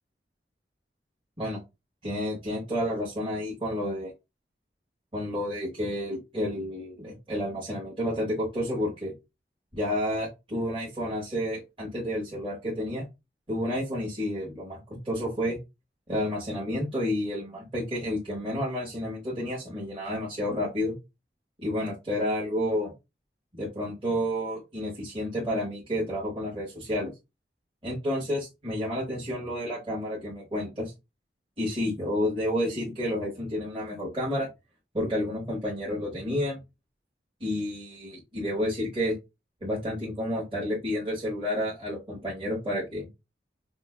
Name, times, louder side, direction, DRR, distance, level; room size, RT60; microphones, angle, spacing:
voice 1, 2.0-4.1 5.1-9.1 9.7-13.0 13.5-15.6 16.1-20.9 21.6-22.9 23.5-27.1 27.8-30.9 31.6-34.5 34.9-36.6 37.4-39.1 39.6-43.1, left 1 dB, 30° right, -6 dB, 1.2 m, -30 dB
5.1 x 2.5 x 2.2 m, 0.24 s
head